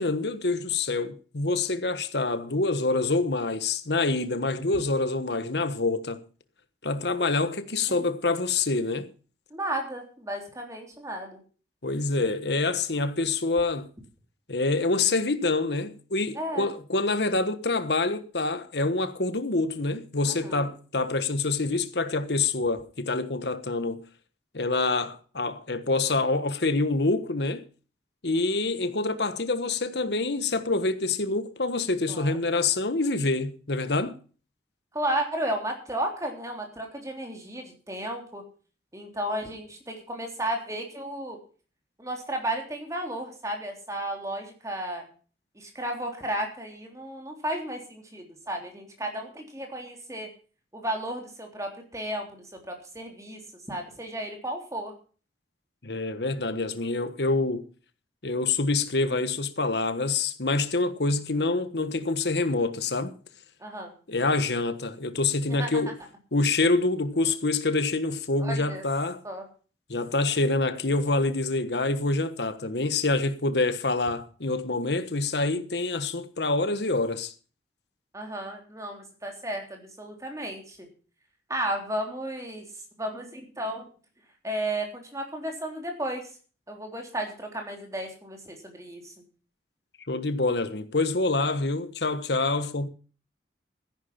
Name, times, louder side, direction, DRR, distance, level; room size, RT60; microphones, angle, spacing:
voice 1, 0.0-6.2 6.8-9.1 11.8-13.9 14.5-24.0 24.5-27.6 28.2-34.1 55.8-57.6 58.2-63.1 64.1-65.9 66.3-69.2 69.9-77.3 90.1-92.9, left 3 dB, 70° left, 1.4 m, -26 dB
voice 2, 9.5-11.4 16.3-16.7 20.2-20.7 32.1-32.4 34.9-38.4 38.9-41.4 42.0-45.1 45.6-50.3 50.7-53.4 53.7-54.9 63.6-63.9 65.5-65.8 68.4-68.8 69.2-69.4 78.1-80.9 81.5-82.7 83.0-83.9 84.4-86.2 86.7-89.1, right 1 dB, 20° right, 3.5 m, -33 dB
14.0 x 11.0 x 5.9 m
head